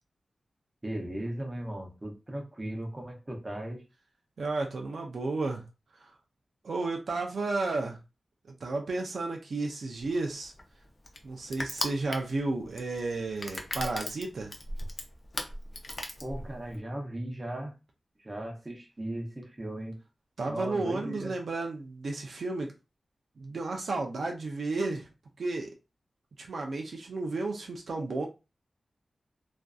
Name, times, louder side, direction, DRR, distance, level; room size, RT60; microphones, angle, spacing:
voice 1, 0.8-3.8 16.2-17.7 18.2-20.0 20.4-21.4, right 1 dB, 25° right, 0.6 m, -37 dB
voice 2, 4.4-5.6 6.0-6.1 6.6-8.0 8.6-10.5 11.2-14.5 20.4-22.7 23.4-25.1 25.4-25.7 26.4-28.3, right 3 dB, 70° right, 0.4 m, -32 dB
Crushing, 10.0-16.8, left 1 dB, 40° left, 0.5 m, -38 dB
2.5 x 2.4 x 2.3 m
wide cardioid pair, 125°, 0 cm